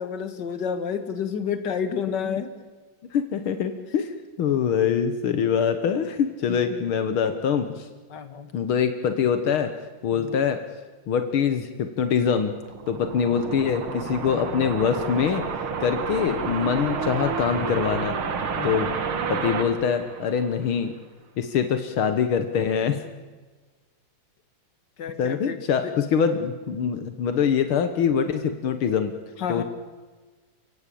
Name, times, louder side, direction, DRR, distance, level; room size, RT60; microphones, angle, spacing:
voice 1, 0.0-2.5 6.5-6.8 8.1-8.5 10.1-10.3 13.0-13.3 18.5-18.9 25.0-25.6 25.8-25.9 29.4-29.6, left 7 dB, 55° left, 8 dB, 2.4 m, -30 dB
voice 2, 3.1-7.9 8.5-9.7 10.0-10.6 11.1-12.5 12.9-15.5 15.8-18.2 18.6-18.9 19.3-20.9 21.4-23.0 25.2-29.1 29.5-29.6, left 7 dB, 80° left, 8 dB, 2.1 m, -24 dB
sound 1, 12.4-20.8, right 5 dB, 80° right, 2.6 m, -30 dB
29.0 x 17.0 x 8.6 m, 1.4 s
omnidirectional pair, 2.3 m